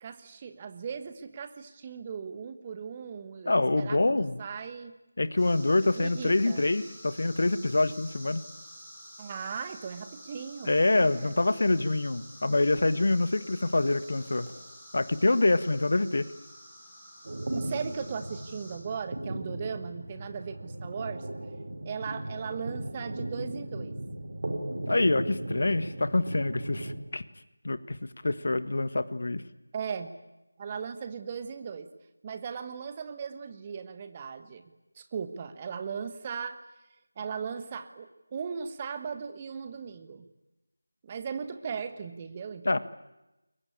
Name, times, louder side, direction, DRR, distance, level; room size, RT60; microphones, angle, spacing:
voice 1, 0.0-5.0 6.0-6.7 9.2-11.4 17.5-21.3 21.8-24.0 29.7-30.1 30.6-31.9 32.2-34.6 34.9-36.6 37.2-40.3 41.0-42.8, right 6 dB, 20° right, 9 dB, 1.4 m, -38 dB
voice 2, 3.4-4.4 5.2-8.4 10.6-14.5 14.9-16.3 24.9-27.2 27.6-29.4 42.6-42.8, left 2 dB, 45° left, 14 dB, 1.5 m, -26 dB
sound 1, 5.4-18.8, equal, ahead, 5.9 m, -49 dB
sound 2, 17.2-27.0, right 1 dB, 40° right, 4.7 m, -37 dB
30.0 x 22.5 x 8.6 m, 0.99 s
figure-of-eight pair, 165°, 0 cm